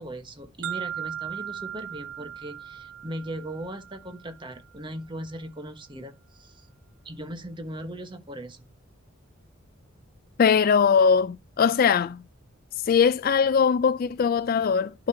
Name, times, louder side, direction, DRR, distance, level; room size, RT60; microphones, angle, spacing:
voice 1, 0.0-6.7 7.0-8.6, right 1 dB, 25° right, 1.2 m, -38 dB
sound 1, 0.6-4.6, right 10 dB, 90° right, 0.4 m, -37 dB
voice 2, 10.4-12.2 12.9-15.1, left 6 dB, 45° left, 0.3 m, -21 dB
11.5 x 5.1 x 2.7 m
head